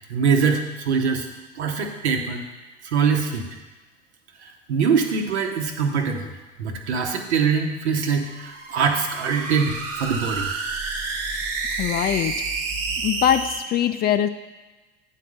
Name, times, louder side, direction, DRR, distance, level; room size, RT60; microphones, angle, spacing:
voice 1, 0.1-1.3 1.5-2.4 2.8-3.5 4.4-6.3 6.6-10.5, right 6 dB, 70° right, 4 dB, 1.1 m, -23 dB
sound 1, 8.2-13.6, right 4 dB, 45° right, 1.3 m, -29 dB
voice 2, 11.8-12.3 13.0-14.3, left 10 dB, 30° left, 10 dB, 0.4 m, -22 dB
9.1 x 4.1 x 6.4 m, 1.2 s
figure-of-eight pair, 75°, 34 cm